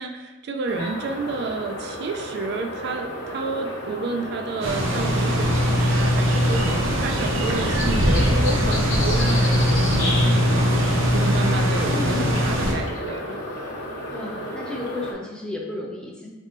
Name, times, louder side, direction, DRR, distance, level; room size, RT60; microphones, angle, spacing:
voice 1, 0.0-10.8 11.1-13.3, right 3 dB, 55° right, 4 dB, 0.3 m, -30 dB
sound 1, 0.7-15.1, left 1 dB, 60° left, 0.9 m, -32 dB
sound 2, 4.6-12.7, equal, 75° right, 0.8 m, -21 dB
voice 2, 11.9-12.6 14.1-16.3, left 1 dB, 5° left, -2 dB, 0.6 m, -33 dB
5.0 x 3.5 x 2.6 m, 1.2 s
head